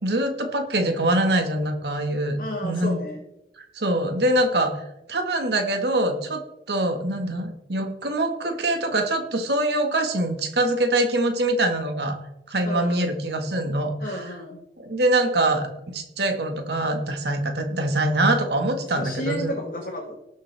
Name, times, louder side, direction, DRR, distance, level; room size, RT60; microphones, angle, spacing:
voice 1, 0.0-3.0 3.7-4.7 5.1-6.4 6.7-12.1 12.5-13.9 14.8-15.7 15.9-19.5, right 1 dB, 65° right, 5 dB, 1.7 m, -24 dB
voice 2, 2.4-3.2 12.6-13.1 14.0-14.6 18.8-20.2, equal, 50° left, -2 dB, 1.6 m, -32 dB
18.5 x 6.9 x 3.5 m, 0.88 s
head